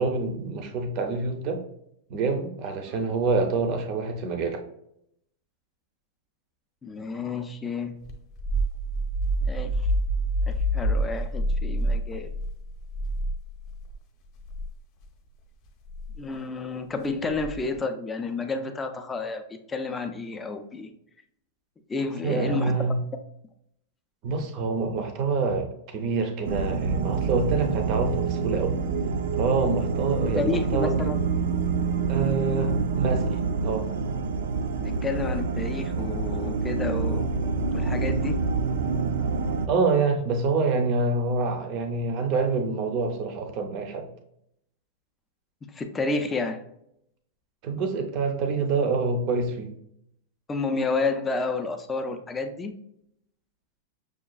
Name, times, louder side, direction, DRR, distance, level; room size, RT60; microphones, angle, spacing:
voice 1, 0.0-1.6 2.1-4.6 22.2-23.0 24.2-28.8 29.4-31.0 32.1-33.9 39.7-44.1 47.6-49.7, right 4 dB, 35° right, 5 dB, 0.6 m, -26 dB
voice 2, 6.8-8.0 9.4-9.9 10.5-12.3 16.1-20.9 21.9-22.7 30.4-31.2 34.8-37.3 37.7-38.4 45.7-46.6 50.5-52.7, left 3 dB, 10° left, 6 dB, 0.4 m, -30 dB
sound 1, 8.1-13.9 14.4-14.7 15.9-16.2 17.3-17.8, right 1 dB, 30° left, 0.7 m, -27 dB
sound 2, 26.4-39.7, right 4 dB, 80° right, 0.4 m, -27 dB
6.2 x 2.3 x 2.3 m, 0.75 s
supercardioid pair, 165°, 0 cm